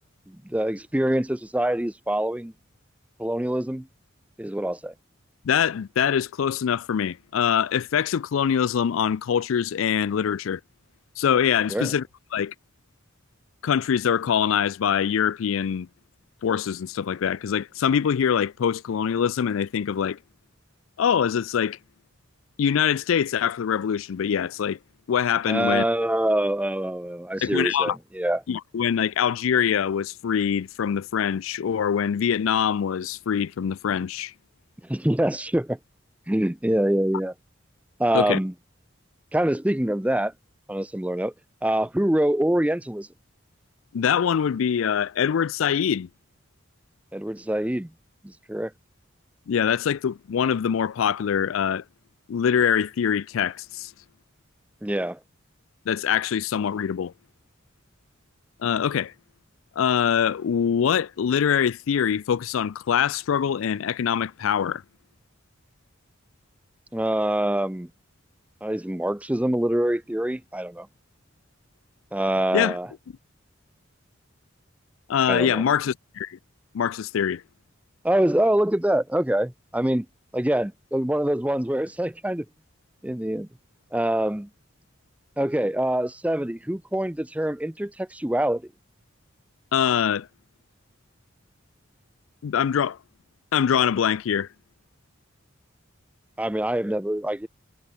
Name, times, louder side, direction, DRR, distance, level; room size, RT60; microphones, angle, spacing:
voice 1, 0.3-2.5 3.2-3.9 4.4-4.9 11.7-11.9 25.5-28.4 34.9-35.8 36.3-37.3 38.0-38.5 39.3-40.3 40.7-41.3 41.6-43.1 47.1-47.9 48.2-48.7 54.8-55.2 66.9-67.9 68.6-70.9 72.1-72.9 75.3-75.6 78.0-80.1 80.3-82.4 83.0-83.5 83.9-84.5 85.4-88.6 96.4-97.5, right 1 dB, 5° right, 0.5 m, -25 dB
voice 2, 5.4-10.6 11.2-12.0 12.3-12.5 13.6-15.9 16.4-20.2 21.0-21.8 22.6-24.8 25.1-25.8 27.4-28.0 28.5-34.3 38.1-38.4 43.9-46.1 49.5-51.8 52.3-53.9 55.9-57.1 58.6-59.1 59.8-64.8 72.5-72.8 75.1-76.4 76.7-77.4 89.7-90.3 92.4-93.0 93.5-94.5, left 8 dB, 85° left, 0.4 m, -24 dB
head